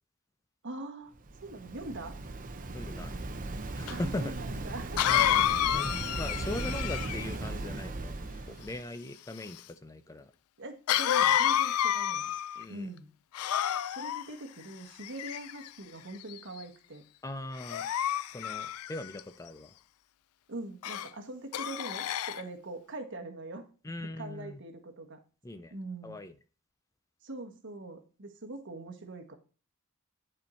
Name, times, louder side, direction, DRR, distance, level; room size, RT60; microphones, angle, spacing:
voice 1, 0.6-1.1 1.4-2.1 3.9-5.6 10.6-12.3 12.7-13.1 13.9-17.0 20.5-23.7 24.2-25.2 25.7-26.2 27.2-29.4, right 2 dB, 60° right, 5 dB, 1.3 m, -43 dB
Waves surf, 1.1-8.8, right 2 dB, 40° right, 0.8 m, -38 dB
voice 2, 2.7-3.1 3.7-4.3 5.1-5.4 5.7-8.2 8.5-10.3 12.6-12.9 17.2-17.9 18.3-19.7 23.8-24.6 25.4-25.7 26.0-26.3, left 2 dB, 15° left, 11 dB, 0.4 m, -40 dB
Cough, 3.9-4.0 5.0-7.3 10.9-12.6 13.3-14.2 15.0-15.7 16.3-16.6 17.6-19.2 20.8-21.1 21.5-22.4, left 11 dB, 90° left, 0.4 m, -29 dB
10.5 x 4.4 x 4.3 m, 0.37 s
head